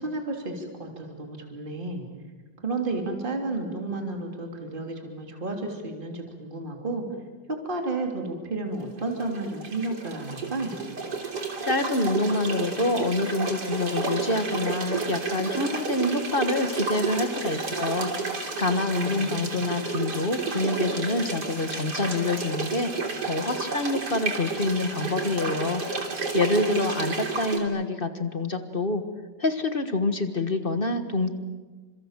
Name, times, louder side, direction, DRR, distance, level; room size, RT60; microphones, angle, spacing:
voice 1, 0.0-2.0 2.6-7.0 7.5-10.8 18.7-19.6, right 2 dB, 25° right, 2 dB, 3.4 m, -32 dB
sound 1, 9.0-27.6, right 4 dB, 65° right, 3.8 m, -31 dB
voice 2, 11.7-18.1 18.6-22.9 23.2-25.8 26.3-29.0 29.4-31.3, left 2 dB, 30° left, 8 dB, 1.6 m, -26 dB
29.0 x 26.5 x 7.5 m, 1.4 s
omnidirectional pair, 2.0 m